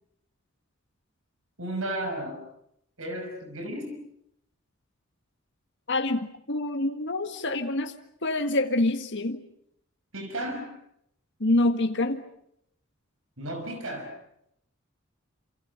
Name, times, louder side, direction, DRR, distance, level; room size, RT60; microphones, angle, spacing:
voice 1, 1.6-2.4 3.0-4.0 10.1-10.8 13.4-14.2, right 1 dB, 80° right, 5 dB, 5.8 m, -34 dB
voice 2, 5.9-6.2 6.5-7.9 8.2-9.4 11.4-12.2, left 2 dB, 60° left, 6 dB, 1.7 m, -26 dB
28.0 x 27.5 x 5.9 m, 0.75 s
head